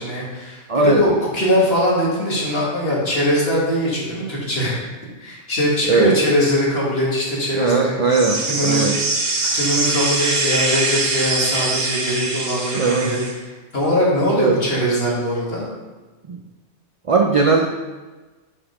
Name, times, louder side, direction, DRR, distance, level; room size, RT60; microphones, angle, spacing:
voice 1, 0.0-4.8 5.2-8.0 8.5-9.1 9.5-15.6, equal, 55° left, -5 dB, 2.1 m, -21 dB
voice 2, 0.7-1.0 5.9-6.1 7.5-9.0 12.8-13.1 14.4-14.6 16.3-16.4 17.1-17.7, right 4 dB, 60° right, 2 dB, 0.3 m, -18 dB
sound 1, 8.1-13.3, right 3 dB, 85° right, 1.3 m, -23 dB
5.6 x 5.0 x 4.9 m, 1.2 s
omnidirectional pair, 1.2 m